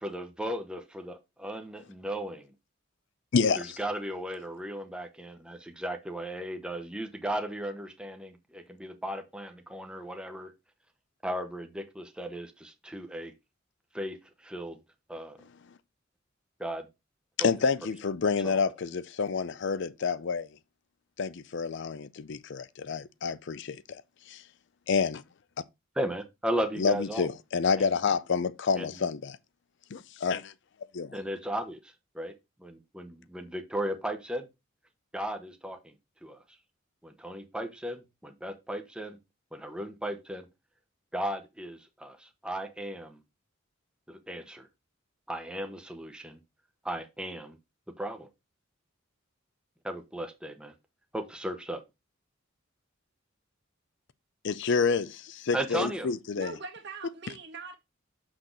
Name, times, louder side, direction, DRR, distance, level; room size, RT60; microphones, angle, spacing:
voice 1, 0.0-2.5 3.5-10.5 11.2-13.3 13.9-14.2 14.4-14.8 15.1-15.4 16.6-16.9 17.4-17.5 18.4-18.6 26.0-27.3 27.8-28.0 28.8-29.0 31.1-31.8 32.1-32.3 32.6-34.5 35.1-35.9 36.2-36.4 37.0-39.2 39.5-40.5 41.1-43.2 44.1-44.7 45.3-46.4 46.8-47.6 48.0-48.3 49.8-50.7 51.1-51.8 55.5-56.1, right 1 dB, 5° right, 0.9 m, -36 dB
voice 2, 3.3-3.8 17.4-20.5 21.2-24.0 24.3-24.4 24.9-25.2 26.8-29.4 29.9-30.5 30.9-31.2 54.4-56.5, left 5 dB, 60° left, 0.5 m, -28 dB
voice 3, 56.4-57.8, right 4 dB, 60° right, 1.6 m, -41 dB
6.4 x 6.1 x 3.9 m
head